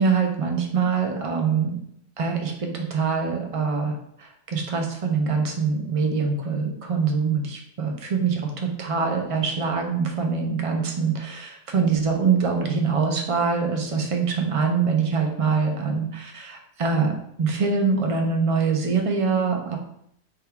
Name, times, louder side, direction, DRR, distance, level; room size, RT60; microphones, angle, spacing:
voice 1, 0.0-1.7 2.2-17.1 17.4-19.8, right 5 dB, 45° right, 3 dB, 0.4 m, -24 dB
3.6 x 2.3 x 4.4 m, 0.71 s
omnidirectional pair, 1.3 m